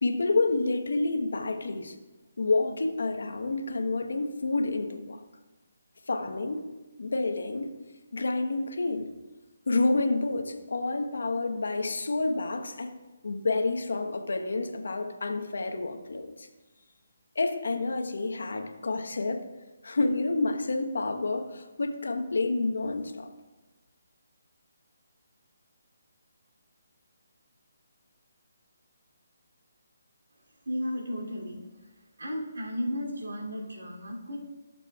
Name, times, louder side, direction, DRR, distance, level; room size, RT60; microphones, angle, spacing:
voice 1, 0.0-1.9 2.4-5.2 6.1-6.6 7.0-7.7 8.1-9.1 9.7-12.9 13.2-16.5 17.3-19.4 19.8-23.3, left 3 dB, 75° left, 5 dB, 1.1 m, -29 dB
voice 2, 30.6-31.6 32.2-34.4, equal, 80° right, -1 dB, 2.9 m, -34 dB
17.5 x 6.8 x 2.4 m, 1.1 s
figure-of-eight pair, 150°, 0 cm